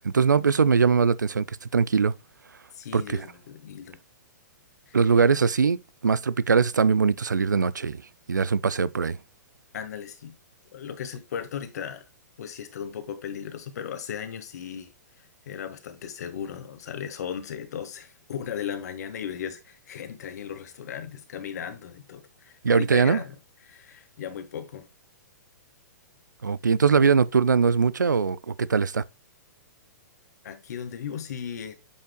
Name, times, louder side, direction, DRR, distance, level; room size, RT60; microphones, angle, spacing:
voice 1, 0.0-2.1 2.9-3.3 4.9-8.0 8.3-9.2 22.6-23.2 26.4-29.0, right 5 dB, 85° right, 0.4 m, -21 dB
voice 2, 2.7-4.0 4.9-5.0 9.7-10.4 10.7-12.0 12.4-14.9 15.4-23.4 23.7-24.9 30.4-31.7, left 8 dB, 60° left, 1.5 m, -36 dB
8.5 x 5.8 x 2.2 m
hypercardioid pair, 120°, 10 cm